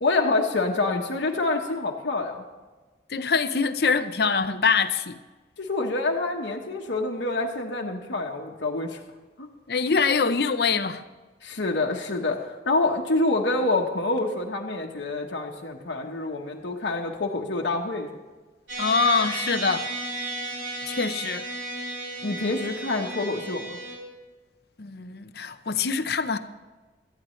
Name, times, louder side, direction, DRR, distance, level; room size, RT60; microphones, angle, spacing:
voice 1, 0.0-2.4 5.6-9.0 9.4-9.5 11.4-18.2 22.2-23.8, left 2 dB, 90° left, 1.2 m, -27 dB
voice 2, 3.1-5.2 9.7-11.0 18.8-19.9 20.9-21.5 24.8-26.4, left 5 dB, 60° left, 0.7 m, -24 dB
sound 1, 18.7-24.0, right 2 dB, 85° right, 4.3 m, -34 dB
18.0 x 13.0 x 3.2 m
head